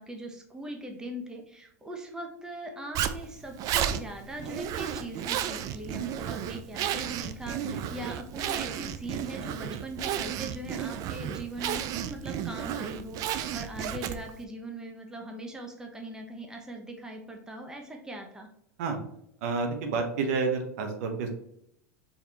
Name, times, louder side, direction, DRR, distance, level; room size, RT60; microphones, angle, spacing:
voice 1, 0.0-18.5, right 1 dB, 10° right, 2 dB, 0.9 m, -40 dB
Zipper (clothing), 2.9-14.4, right 10 dB, 45° right, 0.4 m, -33 dB
voice 2, 19.4-21.3, right 4 dB, 70° right, 4 dB, 1.0 m, -29 dB
4.9 x 3.3 x 2.9 m, 0.73 s
hypercardioid pair, 105°, 8 cm